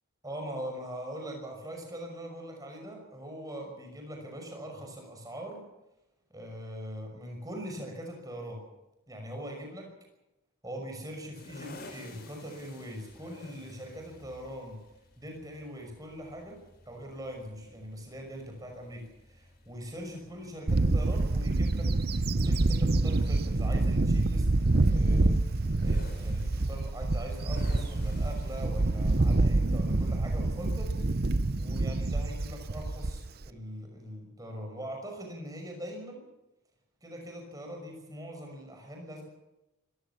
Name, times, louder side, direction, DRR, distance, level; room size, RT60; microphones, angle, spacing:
voice 1, 0.2-5.6 6.3-8.6 9.1-9.9 10.6-14.8 15.2-16.6 16.9-21.9 22.3-24.5 24.9-25.4 25.8-31.2 31.5-36.2 37.0-39.2, equal, 15° right, 2 dB, 5.8 m, -42 dB
sound 1, 11.3-29.1, left 1 dB, 45° left, 4.6 m, -52 dB
Bird / Wind, 20.7-33.5, right 2 dB, 45° right, 0.7 m, -27 dB
25.5 x 15.5 x 7.1 m, 0.95 s
head